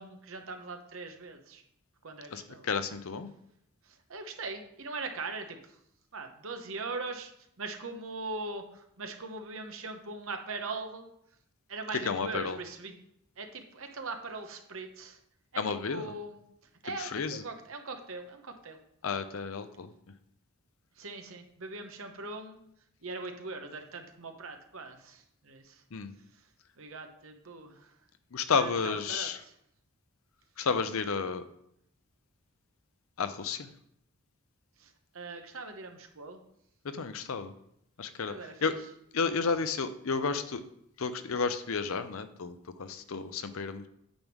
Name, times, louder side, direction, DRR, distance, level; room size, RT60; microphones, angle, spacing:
voice 1, 0.0-1.6 2.0-2.7 4.1-5.6 6.1-7.3 7.6-11.0 11.7-12.9 13.4-15.2 15.5-16.4 16.8-18.8 21.0-22.6 23.0-25.8 26.8-27.9 28.5-29.5 34.8-34.9 35.1-36.4 38.3-38.8, right 3 dB, 65° right, 5 dB, 1.0 m, -41 dB
voice 2, 2.3-3.3 12.0-12.6 15.6-16.1 17.0-17.4 19.0-19.9 25.9-26.1 28.3-29.4 30.6-31.4 33.2-33.7 36.8-37.5 38.0-38.3 38.6-38.8 39.1-40.6 41.0-43.9, left 5 dB, 70° left, 11 dB, 0.6 m, -32 dB
8.9 x 3.6 x 6.0 m, 0.74 s
head